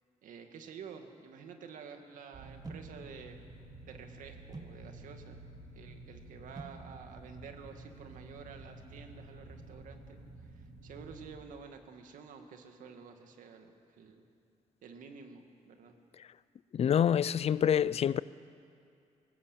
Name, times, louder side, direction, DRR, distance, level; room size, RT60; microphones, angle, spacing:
voice 1, 0.2-3.4 3.9-5.4 5.7-14.2 14.8-16.0, right 6 dB, 85° right, 2.2 m, -50 dB
sound 1, 2.3-11.4, right 2 dB, 65° right, 3.4 m, -51 dB
sound 2, 2.6-8.7, right 3 dB, 30° right, 1.7 m, -53 dB
voice 2, 16.7-18.2, left 9 dB, 50° left, 0.5 m, -26 dB
22.5 x 18.5 x 8.6 m
cardioid pair, 105°, 13 cm